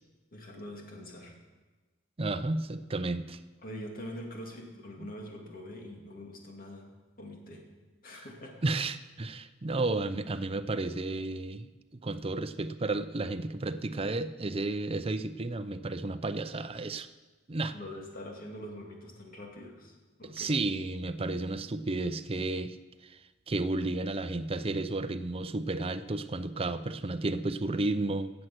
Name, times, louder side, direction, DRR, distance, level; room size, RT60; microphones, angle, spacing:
voice 1, 0.3-1.3 3.6-6.9 7.2-7.6 8.0-8.6 17.7-20.5, left 1 dB, 45° left, 1 dB, 2.3 m, -44 dB
voice 2, 2.2-3.4 5.0-5.1 8.6-17.1 17.5-17.7 20.2-22.8 23.0-28.3, right 2 dB, 30° right, 11 dB, 0.5 m, -32 dB
16.0 x 7.8 x 6.0 m, 1.3 s
head